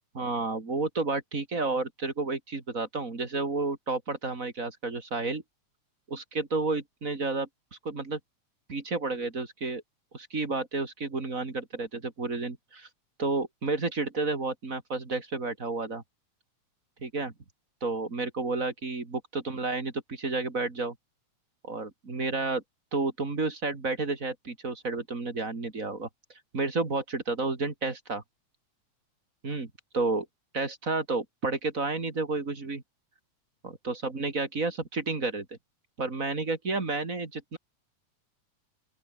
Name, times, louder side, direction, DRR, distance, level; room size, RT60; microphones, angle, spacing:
voice 1, 0.1-5.4 6.1-8.2 8.7-9.8 10.1-12.9 13.2-16.0 17.0-17.3 17.8-20.9 21.6-22.6 22.9-26.1 26.5-28.2 29.4-30.3 30.5-32.8 33.6-35.5 36.0-37.6, right 3 dB, 25° right, 2.9 m, -31 dB
open air
omnidirectional pair, 3.4 m